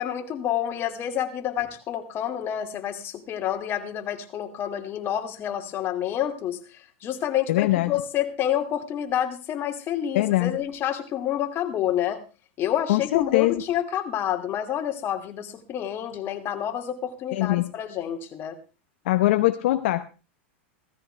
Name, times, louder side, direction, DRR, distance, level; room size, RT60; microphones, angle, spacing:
voice 1, 0.0-12.2 12.6-18.6, left 10 dB, 35° left, 5 dB, 2.4 m, -28 dB
voice 2, 7.5-7.9 10.1-10.6 12.9-13.6 17.3-17.7 19.0-20.0, left 16 dB, 70° left, 9 dB, 0.9 m, -22 dB
16.5 x 14.5 x 3.4 m, 0.32 s
hypercardioid pair, 120°, 7 cm